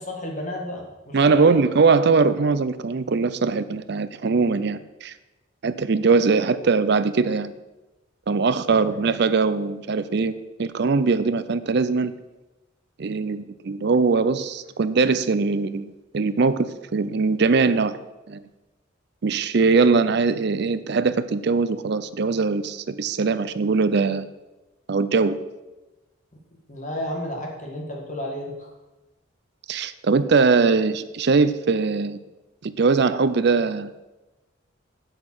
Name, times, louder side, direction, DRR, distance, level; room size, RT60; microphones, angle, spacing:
voice 1, 0.0-1.6 8.7-8.9 26.7-28.7, left 1 dB, 40° left, 1 dB, 1.8 m, -32 dB
voice 2, 1.1-5.1 5.6-7.5 8.3-12.1 13.0-18.0 18.3-18.4 19.2-24.3 24.9-25.4 29.7-32.2 32.6-33.9, right 4 dB, 55° right, 14 dB, 0.5 m, -21 dB
7.8 x 7.5 x 6.1 m, 1.1 s
head